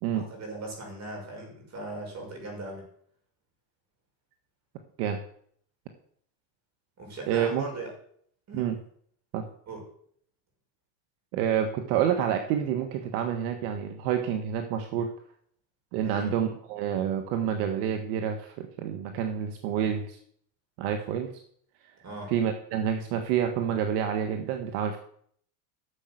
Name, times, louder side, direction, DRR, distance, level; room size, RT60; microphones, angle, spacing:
voice 1, 0.1-2.8 7.0-7.9 8.5-8.7 9.7-9.8 16.0-16.4 22.0-22.3, right 1 dB, 35° right, 1 dB, 6.1 m, -39 dB
voice 2, 7.3-7.6 8.5-8.8 9.3-9.4 11.3-15.1 15.9-20.2 20.8-21.3 21.8-21.9 22.3-25.0, right 9 dB, 70° right, 6 dB, 1.6 m, -28 dB
11.5 x 7.3 x 7.9 m, 0.63 s
supercardioid pair, 125°, 48 cm